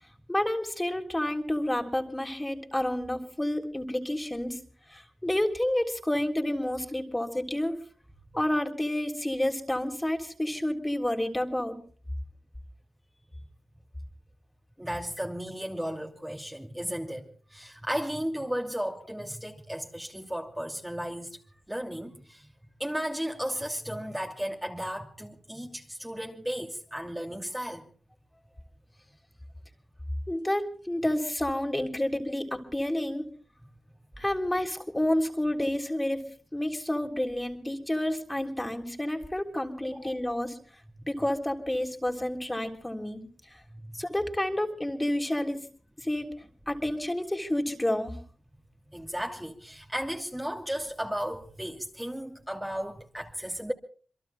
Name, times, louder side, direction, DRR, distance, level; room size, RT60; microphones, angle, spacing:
voice 1, 0.3-4.6 4.9-7.8 8.3-11.8 30.3-33.2 34.2-36.3 36.5-40.6 41.1-43.2 44.0-45.6 46.0-46.3 46.7-48.1, left 1 dB, 15° left, 3.4 m, -29 dB
voice 2, 14.8-21.4 21.7-22.5 22.8-27.8 39.9-40.1 48.9-53.7, equal, 10° right, 2.7 m, -34 dB
28.0 x 22.5 x 2.3 m
cardioid pair, 50°, 0 cm